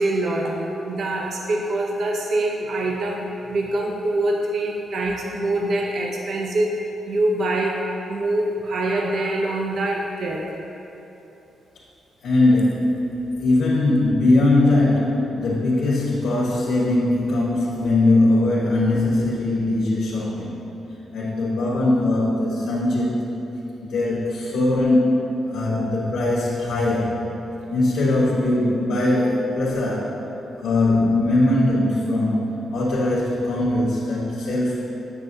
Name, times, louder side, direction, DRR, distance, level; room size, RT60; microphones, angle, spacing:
voice 1, 0.0-6.7 7.0-7.8 8.1-10.5, right 2 dB, 55° right, 0 dB, 0.6 m, -24 dB
voice 2, 12.2-13.1 13.4-20.6 21.1-23.3 23.9-27.3 27.7-30.2 30.6-34.8, left 2 dB, 80° left, -8 dB, 1.2 m, -20 dB
8.2 x 6.8 x 2.7 m, 2.9 s
cardioid pair, 135°, 0 cm